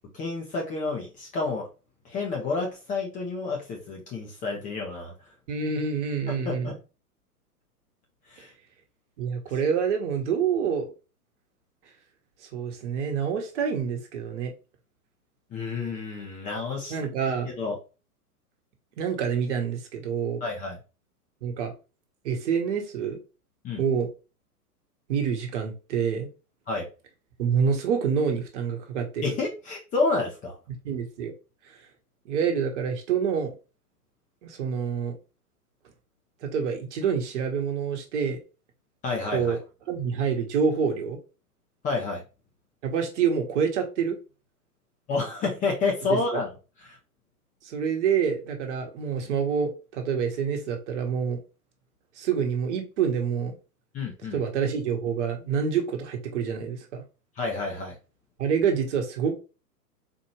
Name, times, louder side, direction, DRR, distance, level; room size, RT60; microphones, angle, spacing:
voice 1, 0.1-1.7 2.0-5.1 6.4-6.7 8.3-8.5 15.5-16.9 17.4-17.8 20.4-20.8 23.6-23.8 26.7-26.9 29.2-30.6 39.0-39.5 41.8-42.2 45.1-46.5 46.8-47.0 53.9-54.4 57.4-58.0, left 3 dB, 15° left, 0.7 m, -29 dB
voice 2, 5.5-6.8 9.2-10.9 12.5-14.5 16.9-17.5 19.0-20.4 21.4-21.7 22.2-23.2 23.8-24.1 25.1-26.3 27.4-29.4 30.8-31.3 32.2-33.5 34.4-35.1 36.4-38.4 39.3-39.6 39.9-41.2 42.8-44.2 46.1-46.4 47.6-51.4 52.2-53.6 54.3-57.0 58.4-59.3, right 6 dB, 50° right, 1.2 m, -27 dB
4.3 x 2.6 x 3.0 m
figure-of-eight pair, 110°, 47 cm